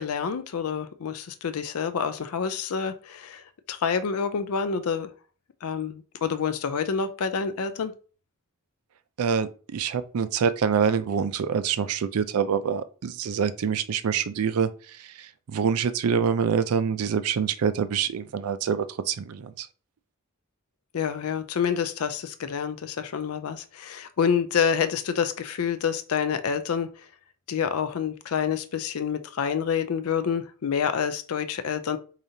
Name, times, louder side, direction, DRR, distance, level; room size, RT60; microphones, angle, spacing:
voice 1, 0.0-5.1 5.6-7.9 20.9-27.1 27.5-32.0, left 7 dB, 75° left, 0.4 m, -28 dB
voice 2, 9.2-19.7, right 6 dB, 85° right, 0.4 m, -26 dB
4.9 x 2.8 x 2.7 m
head